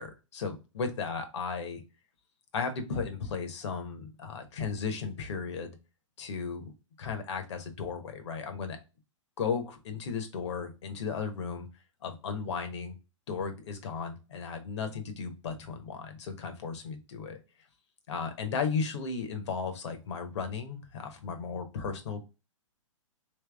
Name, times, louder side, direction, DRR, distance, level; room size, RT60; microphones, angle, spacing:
voice 1, 0.0-1.8 2.5-5.8 6.2-6.7 7.0-8.8 9.4-11.7 12.0-12.9 13.3-17.4 18.1-22.2, left 5 dB, 60° left, 7 dB, 1.2 m, -35 dB
3.3 x 3.2 x 3.4 m, 0.28 s
hypercardioid pair, 120°, 16 cm